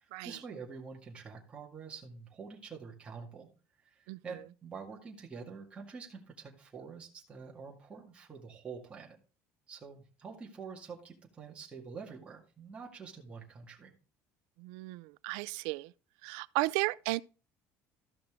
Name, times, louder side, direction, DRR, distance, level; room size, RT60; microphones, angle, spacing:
voice 1, 0.0-3.5 3.8-9.2 9.7-13.9, right 5 dB, 20° right, 2.0 m, -47 dB
voice 2, 14.6-15.9 16.2-17.2, right 22 dB, 85° right, 0.4 m, -34 dB
14.0 x 5.9 x 3.6 m
cardioid pair, 160°, 6 cm